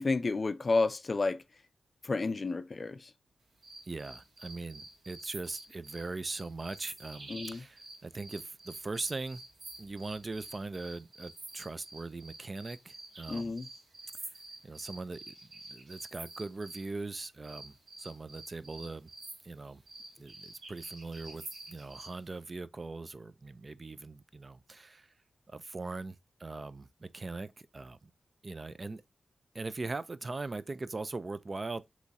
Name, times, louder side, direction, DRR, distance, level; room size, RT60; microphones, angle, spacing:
voice 1, 0.0-1.4 2.0-3.1 7.3-7.7 13.3-13.7, left 3 dB, 40° left, 0.4 m, -31 dB
sound 1, 3.6-16.9 17.4-22.2, right 2 dB, 70° right, 1.5 m, -49 dB
voice 2, 3.9-9.4 9.8-13.5 14.6-15.3 15.7-19.1 19.4-19.8 20.2-21.4 21.7-25.1 25.5-28.1 28.4-29.0 29.5-31.8, right 3 dB, 35° right, 0.3 m, -40 dB
3.5 x 3.1 x 4.0 m
wide cardioid pair, 115°, 0 cm